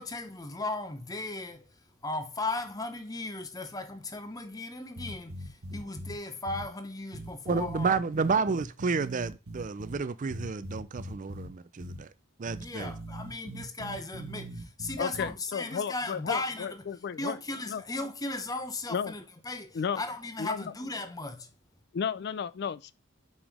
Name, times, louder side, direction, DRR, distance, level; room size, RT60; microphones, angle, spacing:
voice 1, 0.0-1.7 2.0-8.0 12.6-16.9 17.2-21.5, left 2 dB, 15° left, 0.7 m, -36 dB
sound 1, 5.0-6.1 6.5-6.6 7.1-10.0 10.3-11.5 11.8-12.0 12.5-15.3, right 1 dB, 85° right, 1.4 m, -41 dB
voice 2, 7.5-12.1 12.4-12.9, right 4 dB, 35° right, 0.4 m, -30 dB
voice 3, 15.0-17.4 17.7-17.8 18.9-19.1 19.7-20.0 20.4-20.6 21.9-22.9, left 7 dB, 50° left, 0.3 m, -33 dB
5.3 x 5.1 x 3.5 m
head